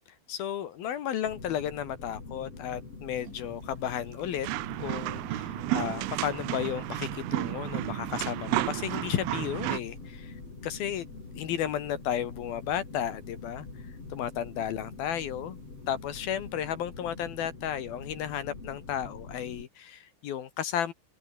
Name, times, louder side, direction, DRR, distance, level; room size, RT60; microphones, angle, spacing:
voice 1, 0.3-4.5 4.8-10.3 10.6-11.1 11.4-13.7 14.1-15.6 15.9-20.9, left 10 dB, 60° left, 2.8 m, -33 dB
sound 1, 1.2-19.6, left 3 dB, 30° left, 6.2 m, -45 dB
sound 2, 2.6-16.9, right 5 dB, 60° right, 7.7 m, -60 dB
sound 3, 4.4-9.8, right 19 dB, 80° right, 3.4 m, -32 dB
omnidirectional pair, 5.7 m